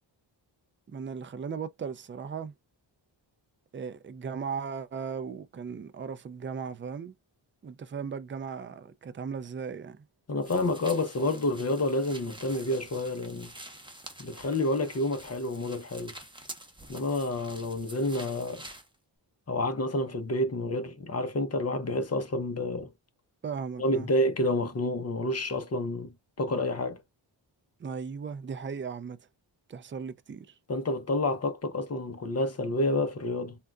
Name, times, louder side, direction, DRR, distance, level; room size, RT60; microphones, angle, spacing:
voice 1, 0.9-2.5 3.7-7.1 7.6-10.0 23.4-24.1 27.8-29.3 29.7-30.6, right 6 dB, 30° right, 0.4 m, -37 dB
voice 2, 10.3-13.5 14.2-16.1 16.9-18.6 19.5-22.9 23.8-27.0 30.7-33.6, left 1 dB, 35° left, 0.7 m, -29 dB
sound 1, 10.4-18.9, right 1 dB, 10° right, 0.9 m, -47 dB
3.7 x 2.3 x 2.3 m
wide cardioid pair, 85°, 46 cm